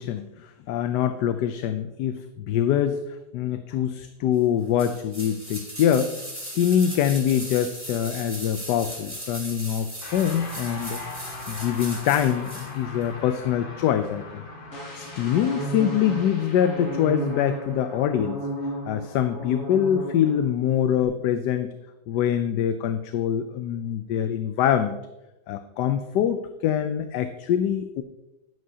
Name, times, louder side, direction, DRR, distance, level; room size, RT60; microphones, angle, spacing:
voice 1, 0.0-6.1 6.4-11.0 11.5-14.5 14.9-18.4 18.9-21.7 22.1-25.0 25.5-28.0, left 9 dB, 85° left, 9 dB, 1.2 m, -24 dB
sound 1, 4.8-12.7 13.0-13.1, equal, 5° right, 3.5 m, -38 dB
sound 2, 10.0-19.5, left 2 dB, 35° left, 1.3 m, -41 dB
sound 3, 14.7-20.4 20.7-21.0, right 1 dB, 50° left, 2.4 m, -34 dB
11.0 x 10.5 x 2.8 m, 0.96 s
omnidirectional pair, 1.8 m